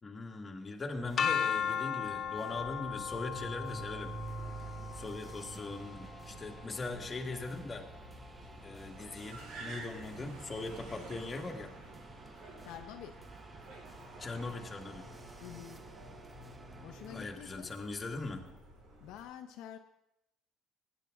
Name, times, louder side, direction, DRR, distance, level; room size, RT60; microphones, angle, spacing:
voice 1, 0.0-4.1 5.0-7.9 8.6-11.7 14.2-15.0 17.1-18.4, left 3 dB, 20° left, 2 dB, 1.7 m, -40 dB
sound 1, 0.9-17.4, right 3 dB, 20° right, 0.7 m, -55 dB
sound 2, 1.2-7.1, left 8 dB, 40° left, 0.8 m, -37 dB
Car, 2.5-19.3, right 2 dB, 75° right, 4.6 m, -48 dB
voice 2, 12.6-13.2 15.4-15.8 16.8-17.7 19.0-19.8, left 10 dB, 80° left, 5 dB, 1.0 m, -47 dB
19.0 x 10.0 x 3.7 m, 0.83 s
cardioid pair, 125°, 0 cm